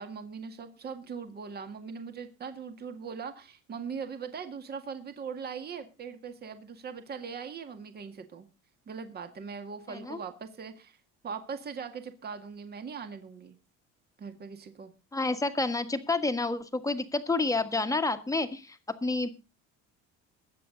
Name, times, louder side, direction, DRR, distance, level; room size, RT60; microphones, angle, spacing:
voice 1, 0.0-8.5 8.9-11.0 11.2-13.6 14.2-14.9, right 6 dB, 30° right, 8 dB, 1.9 m, -40 dB
voice 2, 9.9-10.2 15.1-19.3, left 3 dB, 10° left, 9 dB, 1.5 m, -29 dB
21.5 x 8.3 x 3.9 m, 0.30 s
cardioid pair, 135°, 31 cm